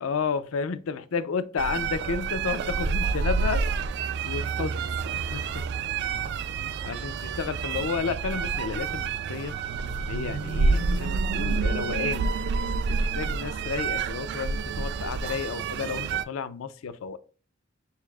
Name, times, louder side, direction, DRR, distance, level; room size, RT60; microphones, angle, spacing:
voice 1, 0.0-3.6 4.2-4.8 5.1-5.6 6.8-9.6 10.1-12.4 13.0-17.2, left 5 dB, 85° left, 0.4 m, -32 dB
sound 1, 1.6-16.2, right 5 dB, 55° right, 0.3 m, -28 dB
6.5 x 2.3 x 2.4 m
head